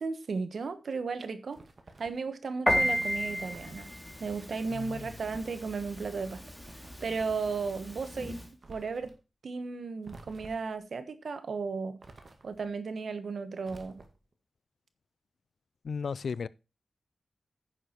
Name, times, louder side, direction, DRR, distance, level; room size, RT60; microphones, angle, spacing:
voice 1, 0.0-1.6 2.0-3.9 4.2-6.4 6.7-8.4 8.7-9.1 9.4-12.0 12.4-14.0, right 4 dB, 75° right, 1.3 m, -35 dB
sound 1, 1.5-2.3 3.4-3.9 5.1-5.7 6.5-7.4 8.6-9.2 10.0-10.8 12.0-12.7 13.6-14.3, right 3 dB, 55° right, 2.1 m, -52 dB
Piano, 2.7-8.5, equal, 10° left, 2.5 m, -34 dB
voice 2, 4.7-5.1 15.8-16.5, left 5 dB, 85° left, 0.4 m, -35 dB
10.0 x 6.9 x 4.5 m
cardioid pair, 60°, 0 cm